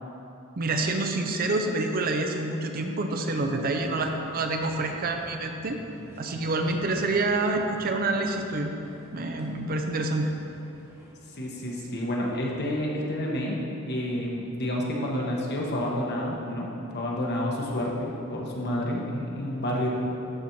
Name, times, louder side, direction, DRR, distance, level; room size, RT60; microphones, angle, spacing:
voice 1, 0.6-5.8 6.2-8.7 9.1-10.3, right 2 dB, 45° right, 4 dB, 0.6 m, -27 dB
sound 1, 3.7-11.1, equal, 10° right, 1.2 m, -49 dB
voice 2, 11.3-13.6 13.9-19.9, left 1 dB, 50° left, -2 dB, 1.3 m, -29 dB
12.0 x 4.3 x 4.6 m, 2.9 s
head